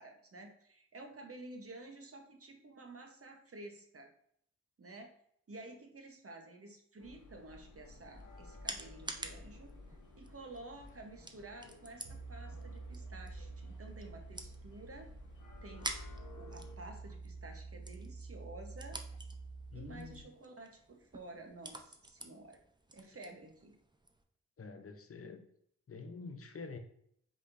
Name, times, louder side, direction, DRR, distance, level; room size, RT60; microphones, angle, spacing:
voice 1, 0.0-4.1 4.8-5.1 5.5-9.7 10.1-15.1 15.6-16.0 16.4-19.0 19.7-22.6 22.9-23.7, right 2 dB, 40° right, 4 dB, 1.1 m, -51 dB
sound 1, 7.0-16.8, left 2 dB, 60° left, 1.1 m, -55 dB
sound 2, 7.8-24.2, right 2 dB, 15° right, 0.6 m, -50 dB
sound 3, 12.0-20.2, right 3 dB, 65° right, 0.8 m, -49 dB
voice 2, 19.7-20.2 24.6-25.5 25.9-26.8, left 4 dB, 40° left, 7 dB, 0.8 m, -47 dB
5.1 x 3.8 x 2.6 m, 0.68 s
supercardioid pair, 40°, 35 cm